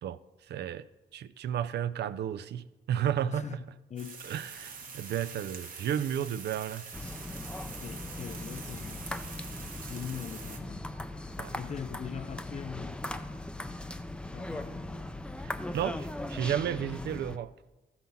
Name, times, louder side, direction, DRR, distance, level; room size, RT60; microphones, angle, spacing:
voice 1, 0.5-0.8 1.1-3.6 4.2-6.9 11.4-11.6 15.7-17.5, right 9 dB, 85° right, 0.4 m, -32 dB
voice 2, 3.3-4.2 4.8-5.0 7.8-9.1 9.6-10.9 11.5-14.0 14.3-15.1, left 7 dB, 45° left, 0.6 m, -42 dB
sound 1, 4.0-10.6, right 5 dB, 55° right, 1.1 m, -45 dB
sound 2, 6.9-17.4, left 1 dB, 5° left, 0.4 m, -39 dB
13.5 x 5.6 x 5.7 m
wide cardioid pair, 120°, 17 cm